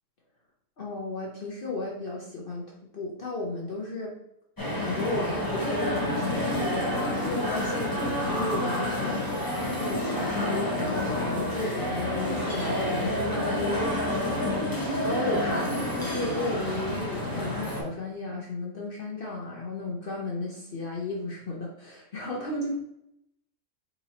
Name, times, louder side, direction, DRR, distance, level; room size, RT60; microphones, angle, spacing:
voice 1, 0.8-4.1 4.8-9.2 9.8-14.5 15.0-22.8, left 2 dB, 45° left, -2 dB, 0.8 m, -34 dB
sound 1, 4.6-17.8, left 1 dB, 15° left, 0.8 m, -29 dB
4.3 x 4.1 x 2.8 m, 0.79 s
omnidirectional pair, 1.6 m